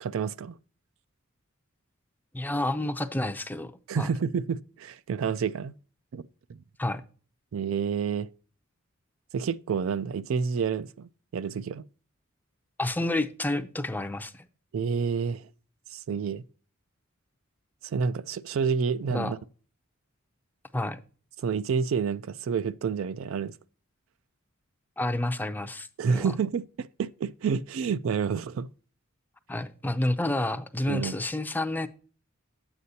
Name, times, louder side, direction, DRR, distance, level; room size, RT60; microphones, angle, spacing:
voice 1, 0.0-0.6 3.9-5.7 6.1-6.2 7.5-8.3 9.3-11.8 14.7-15.5 15.9-16.4 17.8-19.4 21.4-23.5 26.0-28.7 30.9-31.1, right 6 dB, 65° right, 0.4 m, -29 dB
voice 2, 2.3-4.1 6.8-7.0 12.8-14.5 19.1-19.3 20.7-21.0 25.0-26.3 29.5-31.9, left 1 dB, 10° left, 0.5 m, -29 dB
9.2 x 8.0 x 2.7 m
head